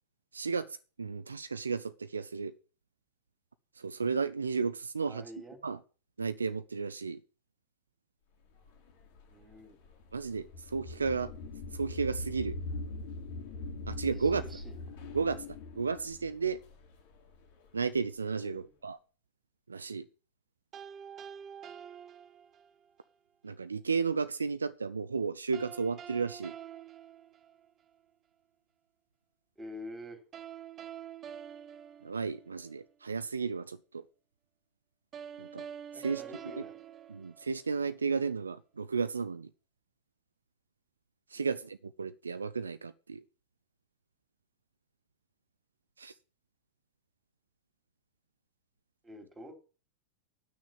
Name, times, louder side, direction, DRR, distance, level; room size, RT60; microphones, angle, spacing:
voice 1, 0.3-2.5 3.8-5.2 5.6-5.8 6.2-7.2 10.1-11.3 11.7-12.6 13.9-14.4 15.1-15.4 15.7-16.6 17.7-19.0 19.7-20.1 23.4-26.5 32.0-34.0 35.4-35.6 35.9-36.6 37.1-39.5 41.3-43.2 46.0-46.1, right 5 dB, 75° right, 0.5 m, -33 dB
voice 2, 5.0-5.6 9.3-9.8 14.1-14.7 18.4-18.7 29.6-30.2 35.9-36.8 41.3-41.6 49.0-49.5, left 1 dB, 10° right, 3.0 m, -47 dB
sound 1, 8.7-17.7, left 2 dB, 50° left, 2.8 m, -42 dB
sound 2, 20.7-22.9 25.5-28.0 30.3-32.8 35.1-37.9, right 9 dB, 30° right, 0.5 m, -47 dB
9.5 x 6.5 x 7.1 m
figure-of-eight pair, 90°, 0 cm